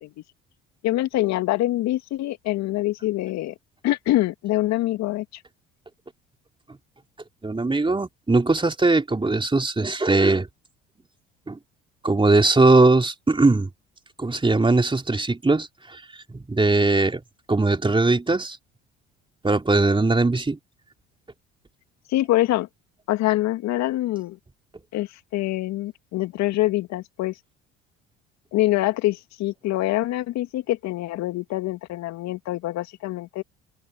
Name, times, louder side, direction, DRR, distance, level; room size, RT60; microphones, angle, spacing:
voice 1, 0.8-3.5 3.8-5.4 22.1-22.7 23.1-24.4 24.9-27.3 28.5-33.4, left 16 dB, 60° left, 2.3 m, -25 dB
voice 2, 7.4-10.5 11.5-11.6 12.0-13.7 14.2-15.7 15.9-16.0 16.3-17.2 17.5-18.6 19.4-20.6, right 3 dB, 15° right, 3.5 m, -20 dB
open air
hypercardioid pair, 60°, 31 cm